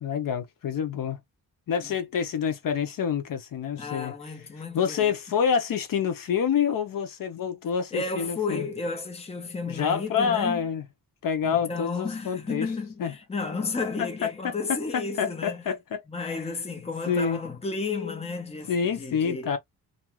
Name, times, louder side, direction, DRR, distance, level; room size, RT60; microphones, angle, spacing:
voice 1, 0.0-1.2 1.7-4.1 4.7-8.7 9.7-10.8 11.2-12.7 13.0-13.1 14.2-14.5 14.9-16.3 17.0-17.4 18.7-19.6, left 7 dB, 70° left, 0.7 m, -27 dB
voice 2, 3.8-5.1 7.9-10.7 11.4-15.6 16.1-19.5, left 4 dB, 20° left, 0.6 m, -32 dB
2.6 x 2.3 x 3.0 m
wide cardioid pair, 155°, 35 cm